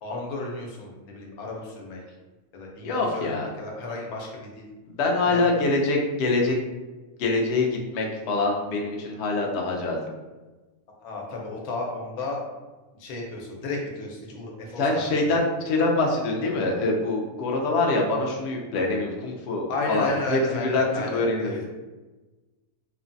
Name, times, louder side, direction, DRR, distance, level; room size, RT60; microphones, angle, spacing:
voice 1, 0.0-2.0 2.5-4.7 5.2-5.6 11.0-12.4 13.0-15.4 19.7-21.6, left 2 dB, 80° left, -1 dB, 1.1 m, -33 dB
voice 2, 2.8-3.5 4.9-6.6 7.2-7.7 7.9-10.0 14.8-21.6, left 2 dB, 65° left, 0 dB, 0.6 m, -24 dB
3.1 x 2.1 x 2.5 m, 1.2 s
omnidirectional pair, 1.5 m